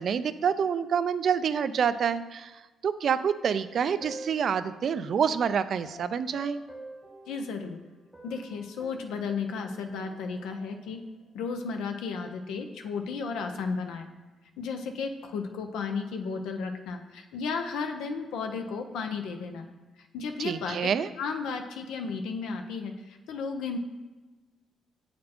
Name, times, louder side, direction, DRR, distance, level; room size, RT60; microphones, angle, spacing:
voice 1, 0.0-6.6 20.4-21.1, right 7 dB, 55° right, 13 dB, 0.3 m, -27 dB
sound 1, 3.8-5.2 5.8-7.8 8.1-11.1, right 1 dB, ahead, 0.8 m, -48 dB
voice 2, 7.3-7.8 8.2-11.0 11.3-14.1 14.6-19.7 20.1-20.8 21.2-23.8, left 5 dB, 90° left, 5 dB, 0.5 m, -34 dB
7.5 x 4.3 x 4.2 m, 1.2 s
cardioid pair, 90°, 0 cm